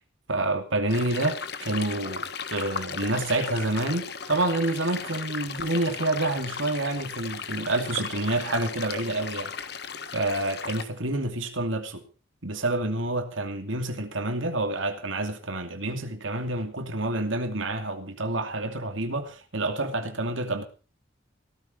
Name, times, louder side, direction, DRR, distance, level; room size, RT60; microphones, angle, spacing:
voice 1, 0.3-9.5 10.1-12.0 12.4-20.6, right 2 dB, 90° right, 2.7 m, -28 dB
sound 1, 0.9-10.8, left 6 dB, 55° left, 1.5 m, -36 dB
17.0 x 13.5 x 4.5 m
head